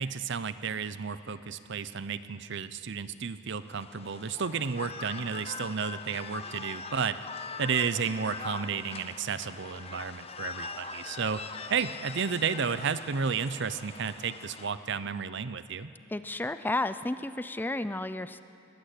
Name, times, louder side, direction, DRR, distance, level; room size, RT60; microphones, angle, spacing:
voice 1, 0.0-7.2 7.6-11.4 11.7-15.9, right 6 dB, 65° right, 14 dB, 0.7 m, -32 dB
sound 1, 3.6-14.7, left 4 dB, 30° left, 0.9 m, -42 dB
voice 2, 16.1-18.4, left 2 dB, 10° left, 12 dB, 0.5 m, -32 dB
21.0 x 19.0 x 8.4 m, 2.7 s
head